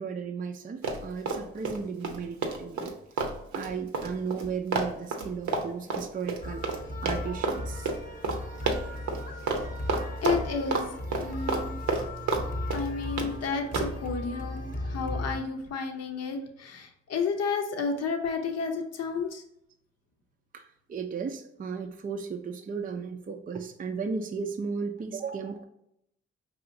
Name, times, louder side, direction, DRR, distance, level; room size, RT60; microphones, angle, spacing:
voice 1, 0.0-2.9 3.2-6.6 7.0-7.9 20.5-25.7, right 5 dB, 30° right, 4 dB, 0.4 m, -35 dB
Run, 0.8-1.8 2.0-6.8 7.1-7.6 7.9-8.0 8.2-8.4 8.7-9.2 9.5-9.6 9.9-10.8 11.1-12.4 12.7-13.3 13.7-13.9, right 4 dB, 75° right, 0.7 m, -29 dB
sound 1, 6.4-15.4, left 1 dB, 30° left, 0.8 m, -36 dB
voice 2, 10.2-10.9 11.2-11.8 12.7-19.4, left 5 dB, 60° left, 5 dB, 0.7 m, -31 dB
4.7 x 2.8 x 2.6 m, 0.77 s
supercardioid pair, 45°, 29 cm